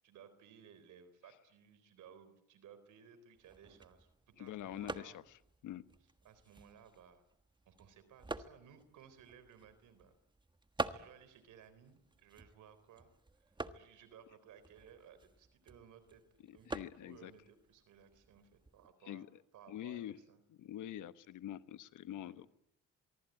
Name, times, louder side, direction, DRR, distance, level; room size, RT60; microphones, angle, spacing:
voice 1, 0.0-5.2 6.2-7.2 7.7-10.1 10.8-16.2 16.5-19.2 19.5-20.4 22.1-22.5, right 8 dB, 80° right, 13 dB, 4.0 m, -60 dB
sound 1, 3.4-18.9, right 2 dB, 15° right, 1.4 m, -48 dB
voice 2, 4.4-5.8 16.4-17.3 19.1-19.3 19.7-20.2 20.5-22.5, left 12 dB, 80° left, 13 dB, 1.3 m, -46 dB
24.5 x 23.5 x 9.1 m, 0.77 s
cardioid pair, 90°, 30 cm